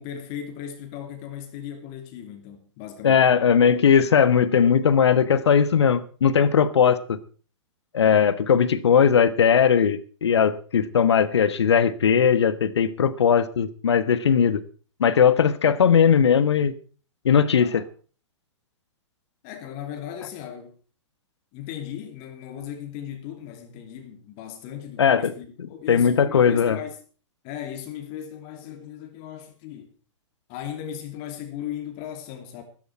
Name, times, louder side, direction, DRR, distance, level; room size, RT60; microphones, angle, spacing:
voice 1, 0.0-3.3 17.6-17.8 19.4-20.7 21.5-27.0 27.4-29.9 30.5-32.6, left 10 dB, 35° left, 2.8 m, -37 dB
voice 2, 3.0-7.2 7.9-14.6 15.0-16.7 17.2-17.8 25.0-25.3 25.9-26.8, left 7 dB, 60° left, 1.3 m, -19 dB
15.0 x 14.0 x 4.7 m
figure-of-eight pair, 110°, 16 cm